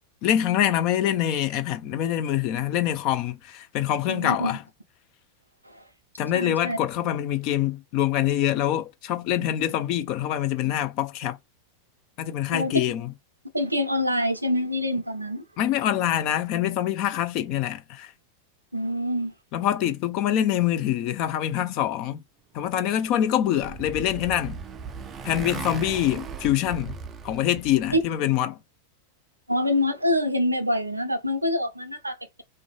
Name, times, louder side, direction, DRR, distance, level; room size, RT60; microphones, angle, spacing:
voice 1, 0.2-4.6 6.2-11.4 12.2-13.1 15.6-18.1 19.5-22.2 22.5-24.6 25.2-27.0 27.2-28.6, left 11 dB, 40° left, 0.5 m, -25 dB
voice 2, 4.1-4.6 6.3-6.8 12.5-12.7 13.5-15.4 18.7-19.3 27.9-28.0 29.5-32.4, left 1 dB, 85° right, 0.5 m, -25 dB
Motorcycle, 23.1-28.1, right 6 dB, 25° right, 0.3 m, -37 dB
2.5 x 2.2 x 2.4 m
figure-of-eight pair, 90°, 0 cm